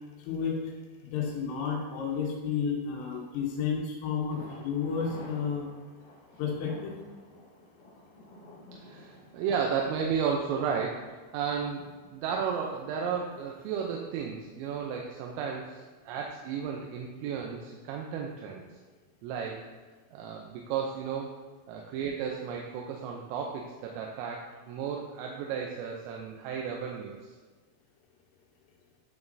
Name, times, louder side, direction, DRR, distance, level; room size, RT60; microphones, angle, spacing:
voice 1, 0.2-0.7 1.1-5.7 6.4-6.9, left 6 dB, 90° left, -2 dB, 3.7 m, -31 dB
Thunder, 4.3-12.1 12.4-12.5 12.9-13.0, left 1 dB, 70° left, 2.1 m, -51 dB
voice 2, 8.7-11.1 11.3-18.6 19.2-19.7 20.1-21.4 21.7-27.2, right 6 dB, 90° right, 0 dB, 3.3 m, -33 dB
11.0 x 6.0 x 2.6 m, 1.3 s
omnidirectional pair, 5.7 m